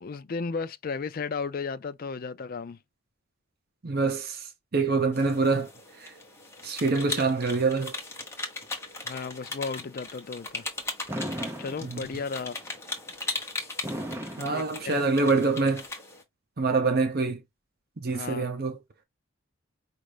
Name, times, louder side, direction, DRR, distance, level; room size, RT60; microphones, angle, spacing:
voice 1, 0.0-2.8 9.0-10.7 11.6-12.6 14.4-15.0 18.1-18.5, left 4 dB, 45° left, 0.4 m, -34 dB
voice 2, 3.8-5.7 6.0-6.1 6.6-7.9 11.8-12.1 14.4-15.8 16.6-17.4 18.0-18.8, right 3 dB, 50° right, 0.7 m, -25 dB
sound 1, 5.1-16.2, left 3 dB, 15° left, 1.1 m, -38 dB
Fireworks, 11.1-12.4 13.8-15.4, equal, 10° right, 0.8 m, -36 dB
5.2 x 2.4 x 3.3 m
head